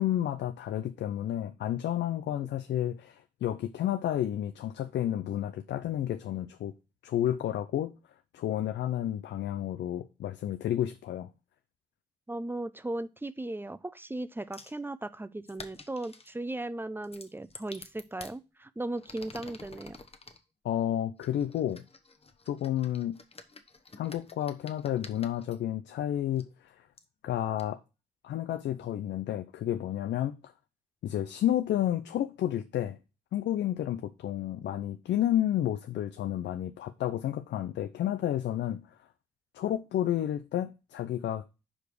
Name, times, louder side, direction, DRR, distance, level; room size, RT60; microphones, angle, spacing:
voice 1, 0.0-6.7 7.0-7.9 8.3-11.3 20.6-21.8 22.5-23.2 24.0-26.9 27.2-27.8 28.2-30.5 31.0-33.0 33.3-38.9 39.5-41.4, left 11 dB, 75° left, 0.5 m, -31 dB
voice 2, 12.3-20.0, right 2 dB, 10° right, 0.7 m, -37 dB
sound 1, 14.5-14.8 15.5-16.3 17.0-18.4 18.9-20.4 21.2-25.6 26.4-26.5 27.0-27.1 27.6-27.7, left 3 dB, 35° left, 1.1 m, -49 dB
5.0 x 5.0 x 6.1 m
supercardioid pair, 45°, 18 cm